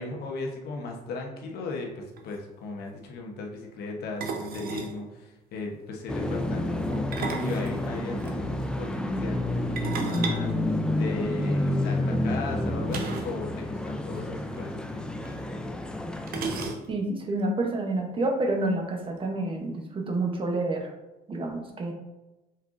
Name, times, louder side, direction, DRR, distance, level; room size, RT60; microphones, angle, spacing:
voice 1, 0.0-10.5 11.0-15.1 16.6-16.7, left 3 dB, 70° left, 0 dB, 1.0 m, -37 dB
sound 1, 1.9-2.0 2.2-2.4 4.2-5.0 6.9-8.3 9.8-11.4 12.9-13.4 13.7-13.8 14.1-14.2 15.2-15.3 16.3-17.1, right 5 dB, 60° right, 0.7 m, -35 dB
sound 2, 6.1-16.7, left 1 dB, 5° left, 0.3 m, -29 dB
voice 2, 16.9-20.9 21.3-21.9, right 2 dB, 30° right, 2 dB, 0.8 m, -28 dB
5.5 x 3.6 x 2.5 m, 1.0 s
cardioid pair, 110°, 17 cm